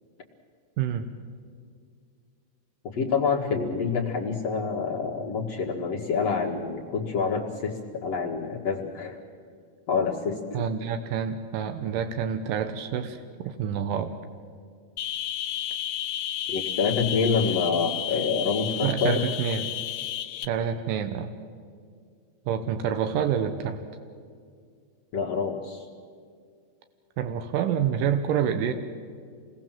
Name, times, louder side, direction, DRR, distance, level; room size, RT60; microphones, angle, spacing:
voice 1, 0.8-1.1 10.5-14.1 18.8-19.7 20.4-21.3 22.5-23.8 27.2-28.7, right 8 dB, 75° right, 8 dB, 2.1 m, -27 dB
voice 2, 2.8-9.2 9.9-10.7 16.5-19.2 25.1-25.9, left 5 dB, 55° left, -1 dB, 2.0 m, -27 dB
sound 1, 15.0-20.5, left 11 dB, 75° left, 2.6 m, -32 dB
28.0 x 20.5 x 7.5 m, 2.2 s
omnidirectional pair, 5.1 m